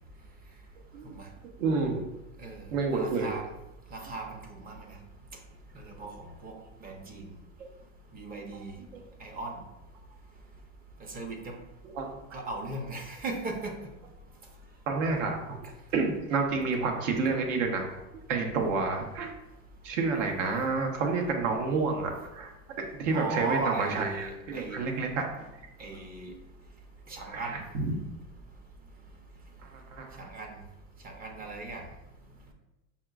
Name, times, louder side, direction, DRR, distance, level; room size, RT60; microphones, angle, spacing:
voice 1, 1.6-2.0 2.7-3.3 8.9-9.0 11.8-12.4 14.9-15.6 15.9-17.9 18.3-19.3 19.8-22.5 22.8-25.3 27.3-28.0 29.6-30.3, right 4 dB, 75° right, 2 dB, 0.9 m, -29 dB
voice 2, 2.9-3.4 3.9-4.9 5.7-6.5 6.8-7.3 8.1-8.8 9.2-9.5 11.1-11.6 12.3-13.7 23.1-24.8 25.8-26.3 27.1-27.6 30.2-30.6 31.0-31.8, right 3 dB, 25° right, 2 dB, 0.6 m, -37 dB
5.4 x 2.4 x 2.3 m, 0.94 s
hypercardioid pair, 110°, 38 cm